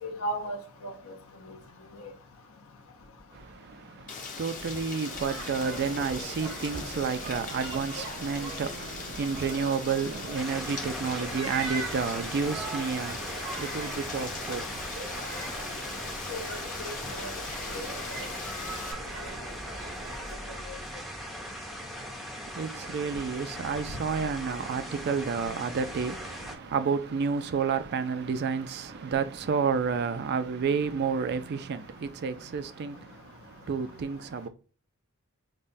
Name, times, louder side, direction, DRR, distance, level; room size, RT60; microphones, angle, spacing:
voice 1, 0.0-0.6 0.8-1.1 16.3-17.3 17.7-17.8 20.7-20.8, equal, 70° left, 0.7 m, -36 dB
voice 2, 3.3-15.6 22.4-34.5, right 5 dB, 50° right, 0.4 m, -31 dB
Rain, 4.1-18.9, left 5 dB, 40° left, 0.8 m, -40 dB
sound 1, 5.0-20.3, right 3 dB, 80° right, 1.2 m, -41 dB
sound 2, 10.3-26.5, equal, ahead, 0.6 m, -39 dB
5.3 x 2.2 x 2.6 m
head